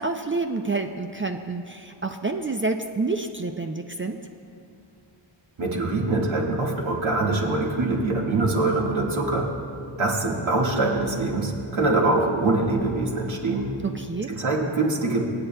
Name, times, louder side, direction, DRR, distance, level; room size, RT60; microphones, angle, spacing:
voice 1, 0.0-4.2 13.8-14.3, right 3 dB, 25° right, 5 dB, 0.4 m, -28 dB
voice 2, 5.6-9.5 10.0-13.7 14.3-15.2, right 2 dB, 75° right, -2 dB, 1.8 m, -24 dB
26.0 x 8.7 x 2.2 m, 2.5 s
wide cardioid pair, 90°, 48 cm